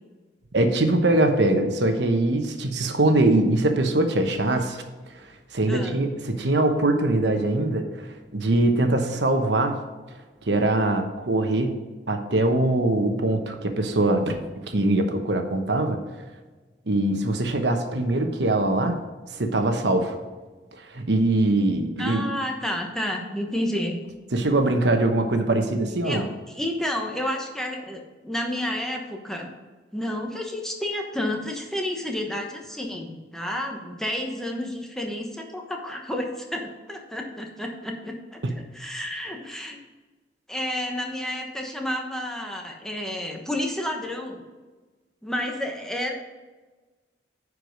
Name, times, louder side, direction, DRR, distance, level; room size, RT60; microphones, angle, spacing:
voice 1, 0.5-4.8 5.5-9.8 10.4-11.8 12.1-14.4 14.7-16.0 16.9-19.0 19.3-20.2 20.7-22.2 24.3-26.3 38.4-38.5, right 2 dB, 80° right, 5 dB, 1.0 m, -22 dB
voice 2, 5.7-6.0 22.0-24.0 26.0-29.5 29.9-38.4 38.7-39.8 40.5-44.4 45.2-46.1, left 1 dB, 5° left, 1 dB, 1.1 m, -30 dB
9.7 x 4.8 x 5.2 m, 1.3 s
head